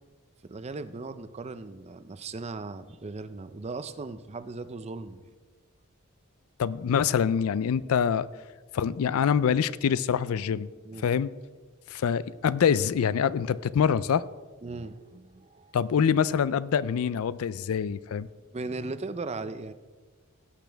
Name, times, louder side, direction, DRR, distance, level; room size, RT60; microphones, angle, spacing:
voice 1, 0.4-5.3 10.8-11.1 14.6-15.8 18.5-19.7, right 3 dB, 30° right, 0.4 m, -38 dB
voice 2, 6.6-8.3 8.7-10.7 11.0-11.3 11.9-14.2 15.7-18.3, left 7 dB, 75° left, 0.4 m, -25 dB
16.5 x 8.2 x 3.4 m
head